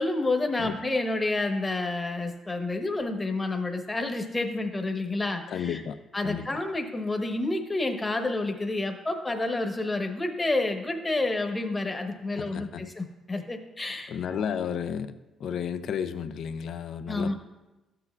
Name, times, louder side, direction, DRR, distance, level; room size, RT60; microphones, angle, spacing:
voice 1, 0.0-5.8 6.1-14.4 17.1-17.3, left 2 dB, 20° left, 5 dB, 1.0 m, -29 dB
voice 2, 5.5-6.0 6.2-6.5 12.3-12.8 14.1-15.1 15.4-17.3, left 8 dB, 70° left, 11 dB, 0.4 m, -32 dB
12.5 x 7.8 x 2.3 m, 1.1 s
cardioid pair, 90°, 0 cm